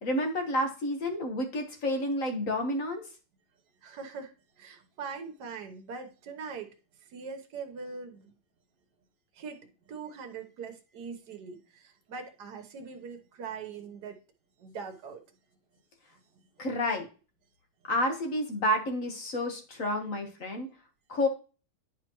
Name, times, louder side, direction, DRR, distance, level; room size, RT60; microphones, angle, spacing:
voice 1, 0.0-3.0 16.6-17.1 17.9-20.7 21.1-21.3, left 1 dB, 45° left, 4 dB, 1.4 m, -30 dB
voice 2, 3.8-6.7 7.0-8.3 9.3-14.2 14.6-15.2 16.1-16.2, right 5 dB, 55° right, 5 dB, 1.5 m, -42 dB
10.5 x 5.0 x 3.0 m, 0.34 s
omnidirectional pair, 2.4 m